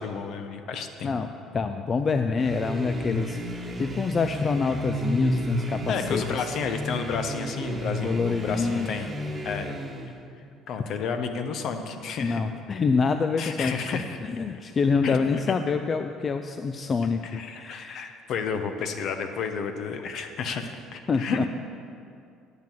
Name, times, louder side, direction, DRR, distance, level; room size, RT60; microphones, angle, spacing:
voice 1, 0.0-1.1 5.9-9.1 9.4-9.8 10.7-12.4 13.4-14.2 15.0-15.4 17.3-20.6 20.9-21.5, left 5 dB, 60° left, 7 dB, 0.9 m, -31 dB
voice 2, 1.0-6.5 8.0-8.9 12.2-18.2 21.1-21.4, left 4 dB, 35° left, 7 dB, 0.4 m, -27 dB
sound 1, 2.4-10.2, equal, 25° right, 1.2 m, -32 dB
9.5 x 5.8 x 7.6 m, 2.4 s
supercardioid pair, 85°, 0 cm